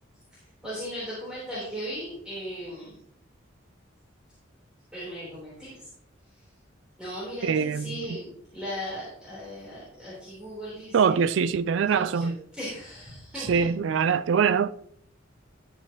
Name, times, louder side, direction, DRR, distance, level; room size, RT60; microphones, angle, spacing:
voice 1, 0.6-3.0 4.9-5.9 7.0-11.2 11.9-12.3 12.6-13.7, equal, 5° right, 3.5 m, -37 dB
voice 2, 7.4-8.2 10.9-12.4 13.4-14.7, right 6 dB, 70° right, 0.3 m, -24 dB
12.5 x 7.4 x 2.9 m
head